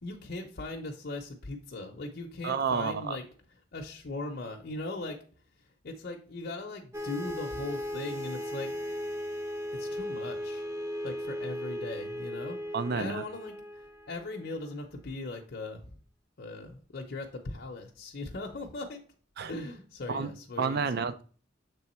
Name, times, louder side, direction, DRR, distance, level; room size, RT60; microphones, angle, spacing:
voice 1, 0.0-3.2 3.7-5.2 5.8-8.7 9.7-10.6 11.0-12.6 12.9-16.0 16.4-19.0 19.5-20.9, left 2 dB, 55° left, 1 dB, 0.7 m, -39 dB
voice 2, 2.4-3.2 12.7-13.2 19.4-19.5 20.1-20.3 20.6-21.2, right 5 dB, 55° right, 12 dB, 0.5 m, -30 dB
sound 1, 6.9-14.7, equal, 20° right, 0.7 m, -37 dB
6.8 x 3.5 x 4.3 m, 0.40 s
head